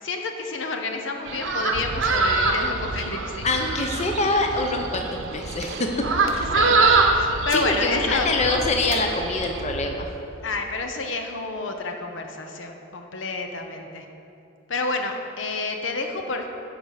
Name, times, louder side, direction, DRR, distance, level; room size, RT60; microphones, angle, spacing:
voice 1, 0.0-3.5 6.2-8.3 10.4-14.1 14.7-16.5, left 3 dB, 70° left, 4 dB, 0.8 m, -29 dB
sound 1, 1.3-9.6, right 3 dB, 75° right, 0.9 m, -25 dB
sound 2, 1.7-10.9, right 3 dB, 50° right, 0.4 m, -36 dB
voice 2, 3.4-6.0 7.5-10.1, left 2 dB, 35° left, 3 dB, 0.8 m, -24 dB
10.5 x 5.3 x 6.5 m, 2.8 s
head